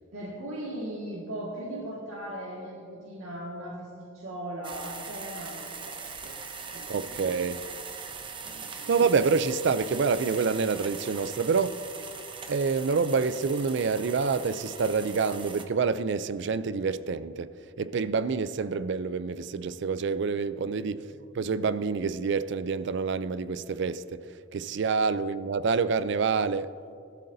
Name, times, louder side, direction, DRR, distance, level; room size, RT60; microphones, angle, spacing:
voice 1, 0.1-6.3 6.7-7.4 8.5-9.0 20.5-20.9, right 1 dB, 80° right, 1.8 m, -39 dB
sound 1, 4.6-15.6, right 5 dB, 25° right, 0.7 m, -41 dB
voice 2, 6.9-7.6 8.7-11.8 12.5-17.5 17.8-21.0 21.3-24.2 24.5-26.7, right 5 dB, 60° right, 0.4 m, -27 dB
18.5 x 12.5 x 2.7 m
head